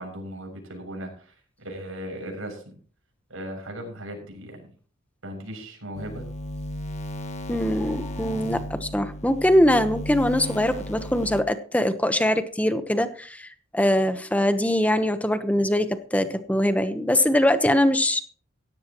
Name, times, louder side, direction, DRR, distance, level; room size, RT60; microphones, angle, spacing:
voice 1, 0.0-2.7 3.3-4.6 5.2-6.2, equal, 85° right, 3 dB, 7.0 m, -37 dB
sound 1, 5.9-11.4, equal, 35° left, 1.5 m, -35 dB
voice 2, 7.5-18.2, left 1 dB, 5° left, 10 dB, 1.1 m, -22 dB
17.0 x 14.5 x 3.1 m, 0.43 s
head